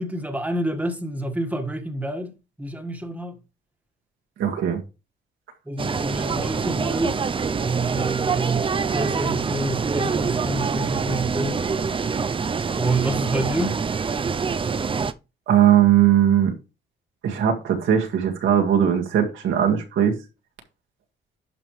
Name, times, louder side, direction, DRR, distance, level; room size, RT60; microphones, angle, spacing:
voice 1, 0.0-3.4 5.6-7.2 7.6-11.7 12.7-13.8, right 2 dB, 5° right, 1.6 m, -28 dB
voice 2, 4.4-4.8 15.5-16.5 17.2-20.2, right 10 dB, 75° right, 2.0 m, -19 dB
sound 1, 5.8-15.1, right 5 dB, 25° right, 0.5 m, -25 dB
11.5 x 5.3 x 3.2 m
cardioid pair, 90°, 20 cm